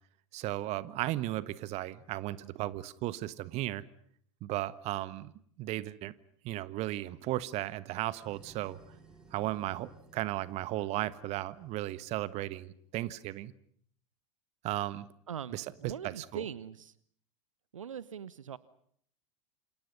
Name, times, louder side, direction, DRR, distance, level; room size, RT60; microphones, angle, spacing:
voice 1, 0.3-3.8 4.4-5.3 5.6-6.1 6.4-8.8 9.3-13.5 14.6-15.1 15.5-16.4, right 16 dB, 40° right, 17 dB, 1.5 m, -35 dB
sound 1, 8.2-13.1, right 4 dB, 5° right, 6.4 m, -59 dB
voice 2, 15.3-16.9 17.7-18.6, right 8 dB, 75° right, 19 dB, 1.1 m, -41 dB
28.5 x 28.0 x 5.4 m, 0.63 s
figure-of-eight pair, 90°, 17 cm